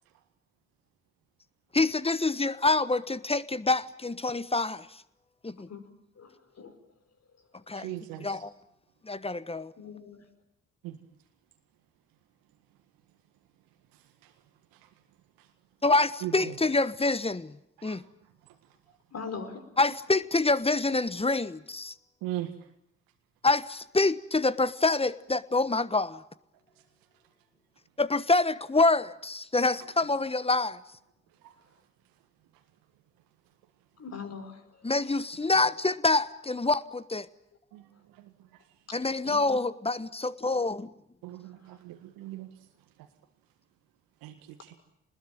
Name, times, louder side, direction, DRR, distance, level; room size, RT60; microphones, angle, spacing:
voice 1, 1.7-5.0 5.4-5.7 7.7-8.5 9.0-9.7 15.8-18.0 19.8-21.9 23.4-26.2 28.0-30.8 34.8-37.3 38.9-40.9, left 3 dB, 15° left, 1.3 m, -26 dB
voice 2, 7.8-8.2 10.8-10.9 16.2-16.3 22.2-22.5 41.2-42.5 44.2-44.3, right 16 dB, 70° right, 1.8 m, -36 dB
voice 3, 9.8-10.2 19.1-19.6 34.0-34.6 39.3-39.4, left 5 dB, 45° left, 4.9 m, -40 dB
27.5 x 20.5 x 9.1 m
hypercardioid pair, 40°, 36 cm